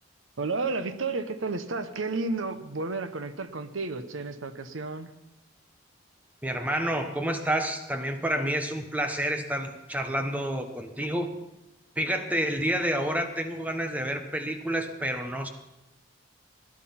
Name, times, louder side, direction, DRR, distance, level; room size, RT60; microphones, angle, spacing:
voice 1, 0.4-5.1, right 3 dB, 90° right, 11 dB, 1.0 m, -32 dB
voice 2, 6.4-11.4 12.0-15.5, right 1 dB, 10° right, 6 dB, 1.1 m, -29 dB
16.5 x 11.0 x 5.9 m, 0.98 s
head